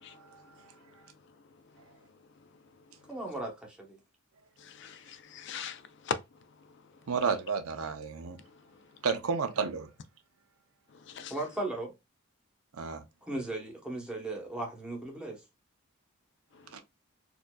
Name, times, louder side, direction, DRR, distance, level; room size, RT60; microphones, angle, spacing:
voice 1, 0.1-0.4 7.1-8.4 9.0-9.9 12.7-13.0 16.7-16.8, right 5 dB, 90° right, 0.6 m, -32 dB
voice 2, 3.1-4.0 11.3-11.9 13.2-15.4, right 2 dB, 5° right, 0.8 m, -37 dB
voice 3, 4.6-6.2 11.1-11.3, left 6 dB, 55° left, 0.3 m, -38 dB
4.3 x 2.6 x 2.2 m
head